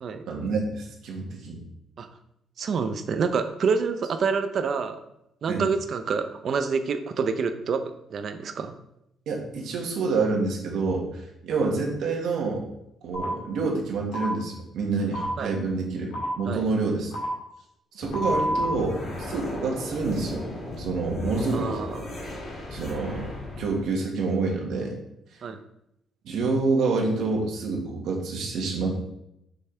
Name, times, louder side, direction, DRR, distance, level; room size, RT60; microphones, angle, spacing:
voice 1, 0.3-1.6 5.5-5.6 9.3-12.7 13.0-17.1 17.9-20.4 20.8-21.8 22.7-23.3 23.6-24.9 26.3-28.9, right 3 dB, 70° right, 0 dB, 1.7 m, -27 dB
voice 2, 2.6-5.0 5.4-7.8 8.1-8.8 15.4-15.6 16.5-16.6 21.5-22.1 25.4-25.6, right 5 dB, 45° right, 8 dB, 0.6 m, -27 dB
sound 1, 13.1-13.3 14.1-14.3 15.1-15.3 16.1-16.3 17.1-17.3 18.1-18.7, equal, 85° left, 2.1 m, -28 dB
sound 2, 18.0-23.8, left 1 dB, 35° left, 1.8 m, -36 dB
6.5 x 5.7 x 3.4 m, 0.81 s
cardioid pair, 165°, 0 cm